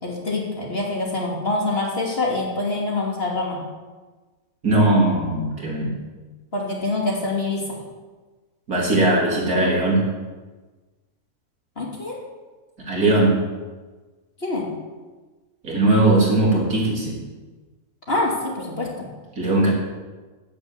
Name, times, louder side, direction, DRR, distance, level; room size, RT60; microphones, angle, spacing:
voice 1, 0.0-3.6 6.5-7.8 11.8-12.2 14.4-14.7 18.1-19.1, left 2 dB, 40° left, -2 dB, 3.1 m, -25 dB
voice 2, 4.6-5.9 8.7-10.0 12.9-13.4 15.6-17.2 19.4-19.7, right 2 dB, 85° right, -3 dB, 4.1 m, -19 dB
10.5 x 9.6 x 8.2 m, 1.3 s
omnidirectional pair, 1.6 m